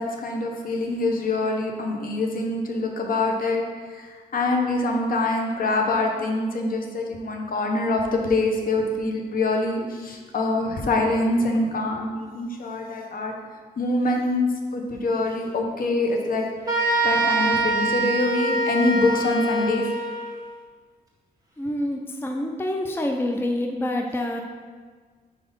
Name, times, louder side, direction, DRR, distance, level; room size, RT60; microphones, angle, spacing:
voice 1, 0.0-3.6 3.9-13.3 13.8-16.5 17.0-19.9, left 2 dB, 60° left, 2 dB, 0.9 m, -25 dB
sound 1, 16.7-20.3, right 2 dB, 20° right, 1.5 m, -24 dB
voice 2, 21.6-24.4, left 1 dB, 15° left, 3 dB, 0.5 m, -27 dB
4.7 x 4.0 x 5.3 m, 1.5 s
cardioid pair, 75°, 17 cm